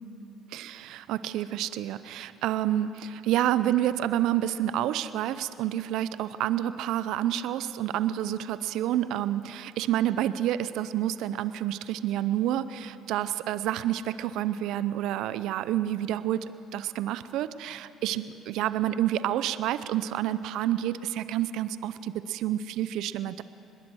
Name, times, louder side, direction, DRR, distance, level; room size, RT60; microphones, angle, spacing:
voice 1, 0.5-23.4, right 12 dB, 70° right, 15 dB, 0.6 m, -29 dB
24.0 x 21.0 x 6.3 m, 3.0 s
hypercardioid pair, 60°, 0 cm